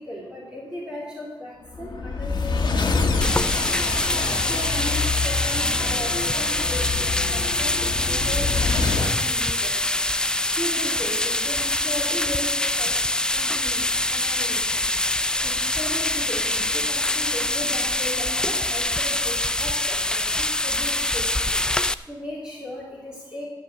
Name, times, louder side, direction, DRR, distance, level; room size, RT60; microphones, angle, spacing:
voice 1, 0.1-3.7 4.5-13.0 13.3-14.8 15.4-21.5 22.1-23.5, left 1 dB, 10° right, -5 dB, 3.0 m, -36 dB
sound 1, 1.7-9.2, left 4 dB, 60° left, 1.4 m, -26 dB
sound 2, 3.2-21.9, left 1 dB, 10° left, 0.3 m, -24 dB
14.0 x 6.5 x 8.1 m, 1.1 s
wide cardioid pair, 120°, 8 cm